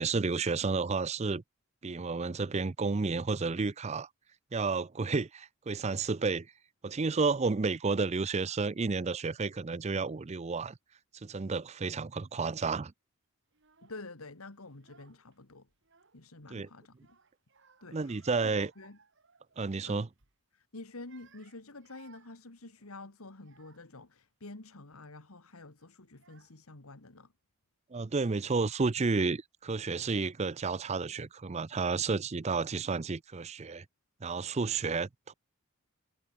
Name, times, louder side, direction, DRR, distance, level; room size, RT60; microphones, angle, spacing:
voice 1, 0.0-1.4 1.8-4.1 4.5-6.5 6.8-10.8 11.2-12.9 16.5-16.7 17.9-18.7 19.6-20.1 27.9-33.8 34.2-35.3, right 4 dB, 30° right, 0.5 m, -31 dB
Child speech kid speaking / Crying sobbing, 13.5-14.1 14.7-15.4 15.7-16.5 17.0-19.8 20.1-20.4 20.9-24.0 24.7-25.0 25.8-25.9 26.2-26.9, right 5 dB, 55° right, 2.1 m, -63 dB
voice 2, 13.8-15.7 16.1-17.2 17.8-19.0 19.9-20.1 20.5-27.3, left 2 dB, 75° left, 2.0 m, -49 dB
head